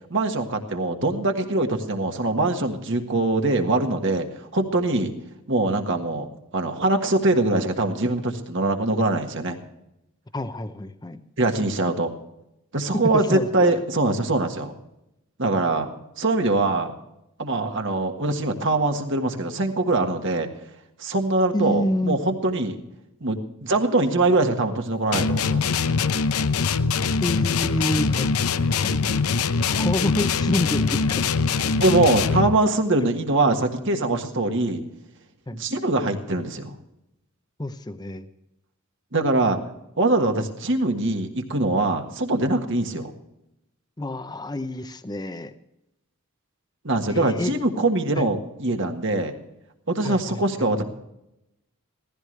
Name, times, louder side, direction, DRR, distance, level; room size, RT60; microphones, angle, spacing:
voice 1, 0.1-4.3 4.5-5.1 5.5-6.3 6.5-9.6 11.4-12.1 12.7-14.7 15.4-15.9 16.2-16.9 17.4-20.5 21.0-22.8 23.2-25.7 31.8-34.8 35.5-36.7 39.1-39.6 40.0-43.1 46.8-49.3 49.9-50.8, right 2 dB, 55° right, 4 dB, 1.6 m, -23 dB
voice 2, 10.3-11.2 12.9-13.8 21.5-22.2 27.2-29.0 29.7-31.2 33.0-33.1 35.5-35.6 37.6-38.3 44.0-45.5 47.1-47.5 48.2-48.3 50.0-50.7, left 1 dB, 20° left, 10 dB, 0.6 m, -28 dB
sound 1, 25.1-32.6, left 5 dB, 75° left, 0.7 m, -23 dB
16.0 x 15.5 x 3.3 m, 0.86 s
head